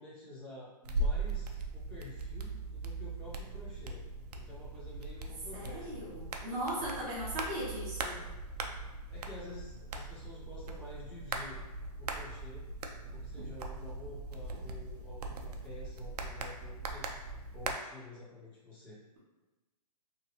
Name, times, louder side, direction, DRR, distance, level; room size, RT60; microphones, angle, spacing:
voice 1, 0.0-4.0 4.3-5.9 6.8-6.9 9.1-11.6 12.0-12.6 13.1-17.1 17.5-19.0, left 1 dB, 35° left, -8 dB, 1.3 m, -49 dB
sound 1, 0.8-17.7, right 2 dB, 75° right, 0.5 m, -40 dB
voice 2, 5.5-8.2, equal, 25° right, -10 dB, 0.7 m, -38 dB
2.9 x 2.7 x 2.9 m, 1.2 s
hypercardioid pair, 175°, 21 cm